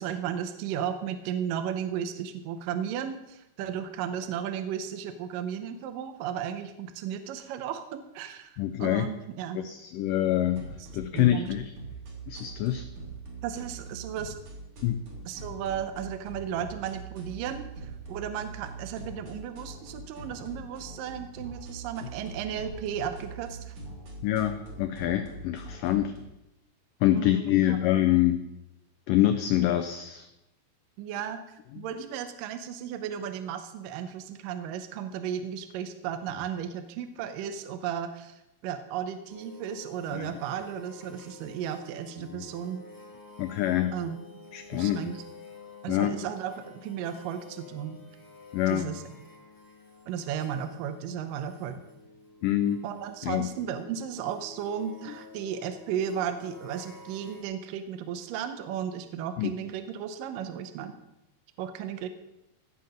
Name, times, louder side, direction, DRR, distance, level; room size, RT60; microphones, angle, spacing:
voice 1, 0.0-9.6 11.1-11.5 13.4-14.4 15.3-23.8 27.1-27.8 31.0-31.4 31.8-42.8 43.9-44.2 44.7-45.2 45.8-48.0 48.7-49.0 50.1-51.8 52.8-60.9 61.6-62.1, right 8 dB, 80° right, 8 dB, 2.1 m, -34 dB
voice 2, 8.6-9.1 9.5-10.7 10.9-11.7 12.3-12.9 14.8-15.0 24.2-26.1 27.0-28.5 29.1-30.3 31.7-31.9 40.1-40.4 42.3-42.4 43.4-43.9 44.5-45.1 45.9-46.1 48.5-48.9 52.4-52.8 53.2-53.5 59.4-59.5, left 13 dB, 90° left, 8 dB, 1.9 m, -26 dB
sound 1, 10.5-26.2, right 3 dB, 50° right, 3.8 m, -43 dB
sound 2, 39.3-57.4, left 2 dB, 15° left, 0.7 m, -50 dB
16.5 x 7.0 x 5.2 m, 0.90 s
omnidirectional pair, 4.6 m